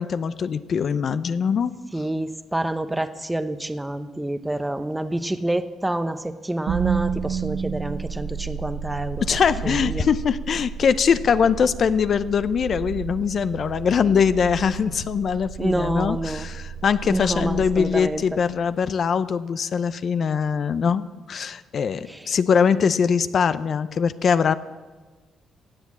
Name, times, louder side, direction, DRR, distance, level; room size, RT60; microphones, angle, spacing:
voice 1, 0.0-1.7 9.2-24.6, left 6 dB, 55° left, 13 dB, 0.6 m, -22 dB
voice 2, 1.9-9.2 9.6-10.1 15.6-16.5 17.1-18.4 22.1-22.3, right 1 dB, 10° right, 10 dB, 0.8 m, -28 dB
sound 1, 6.7-18.8, right 7 dB, 65° right, 0.6 m, -32 dB
16.5 x 8.3 x 7.4 m, 1.3 s
cardioid pair, 90°, 0 cm